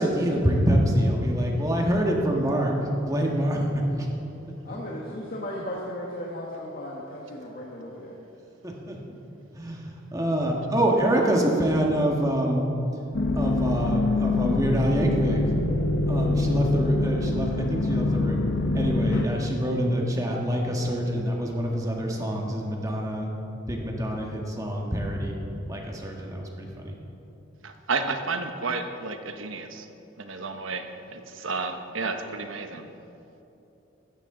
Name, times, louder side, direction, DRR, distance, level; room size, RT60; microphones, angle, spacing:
voice 1, 0.0-3.6 4.0-4.1 4.7-4.8 8.6-9.0 9.5-12.7 13.3-15.4 16.1-18.4 18.7-23.3 23.7-25.3 25.7-26.9, equal, 15° right, -1 dB, 1.6 m, -26 dB
voice 2, 4.6-8.2, left 1 dB, 45° left, -3 dB, 1.4 m, -36 dB
sound 1, 13.1-19.3, left 2 dB, 75° left, 0.9 m, -25 dB
voice 3, 27.6-29.9 30.2-32.9, right 4 dB, 85° right, 6 dB, 1.0 m, -31 dB
15.5 x 13.0 x 3.9 m, 3.0 s
head